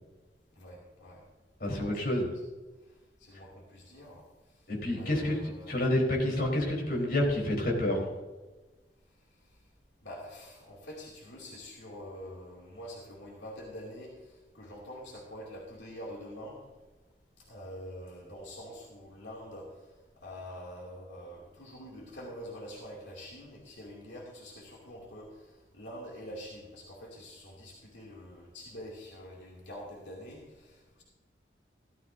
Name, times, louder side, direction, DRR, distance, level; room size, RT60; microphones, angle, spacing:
voice 1, 0.5-1.2 1.7-2.0 3.2-4.2 5.0-5.8 10.0-16.6 17.4-19.7 20.2-31.0, equal, 85° left, -3 dB, 2.6 m, -45 dB
voice 2, 1.6-2.3 3.3-3.4 4.7-8.1, left 1 dB, 55° left, -2 dB, 3.9 m, -29 dB
15.5 x 13.0 x 2.7 m, 1.2 s
head